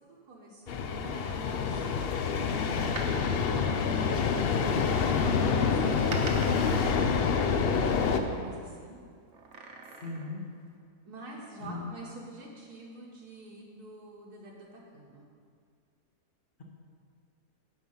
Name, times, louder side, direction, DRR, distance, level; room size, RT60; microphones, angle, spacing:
voice 1, 0.0-1.8 2.4-7.4 8.1-9.0 11.0-15.3, right 2 dB, 70° right, -4 dB, 1.7 m, -48 dB
sound 1, 0.7-8.2, left 5 dB, 85° left, 0.5 m, -27 dB
Door, 2.7-4.6 5.5-8.4 9.3-10.4 10.8-10.9, right 3 dB, 50° right, 1.2 m, -45 dB
voice 2, 10.0-10.4 11.6-11.8, left 2 dB, 35° left, -2 dB, 1.2 m, -39 dB
9.5 x 6.2 x 5.5 m, 2.2 s
omnidirectional pair, 1.7 m